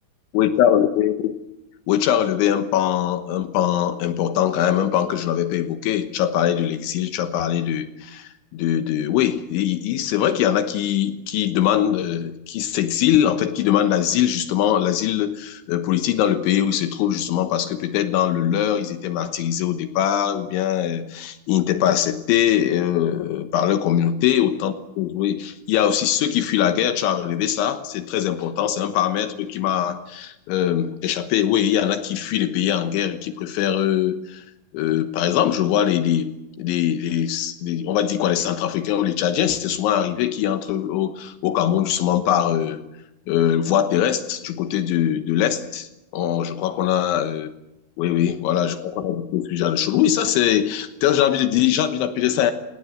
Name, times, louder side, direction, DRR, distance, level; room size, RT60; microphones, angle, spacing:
voice 1, 0.3-1.4 1.9-34.5 34.7-36.3 36.6-42.8 43.3-47.5 48.0-52.5, left 10 dB, 80° left, 8 dB, 3.5 m, -22 dB
30.0 x 18.0 x 7.9 m, 0.93 s
omnidirectional pair, 5.4 m